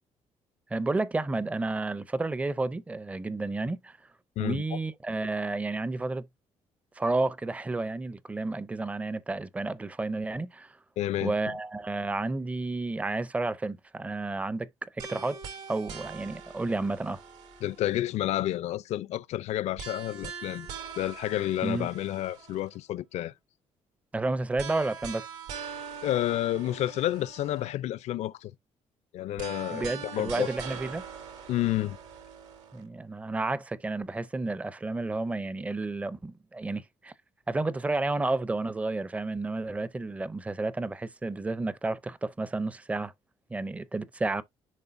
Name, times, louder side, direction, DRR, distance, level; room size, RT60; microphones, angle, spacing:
voice 1, 0.7-4.0 4.4-6.3 7.0-10.7 11.2-14.7 15.0-15.4 15.7-17.2 21.6-21.9 24.1-25.3 29.7-31.0 32.7-37.1 37.5-43.1 43.5-44.4, right 2 dB, 10° right, 0.5 m, -31 dB
voice 2, 11.0-11.6 17.6-20.7 21.0-23.3 26.0-28.5 29.1-30.5 31.5-32.0, left 14 dB, 70° left, 0.5 m, -30 dB
sound 1, 15.0-18.1 19.8-22.8 24.6-27.7 29.4-32.8, right 6 dB, 85° right, 2.8 m, -42 dB
11.0 x 3.7 x 2.6 m
cardioid pair, 135°, 12 cm